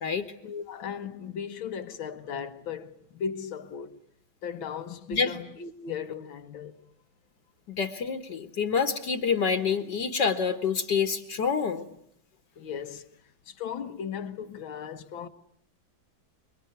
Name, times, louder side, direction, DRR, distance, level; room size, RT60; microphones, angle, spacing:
voice 1, 0.4-4.0 4.4-6.7 12.6-13.1 13.5-15.3, left 7 dB, 80° left, 2.1 m, -37 dB
voice 2, 7.7-11.9, left 6 dB, 60° left, 2.0 m, -27 dB
26.5 x 23.5 x 9.4 m
omnidirectional pair, 2.1 m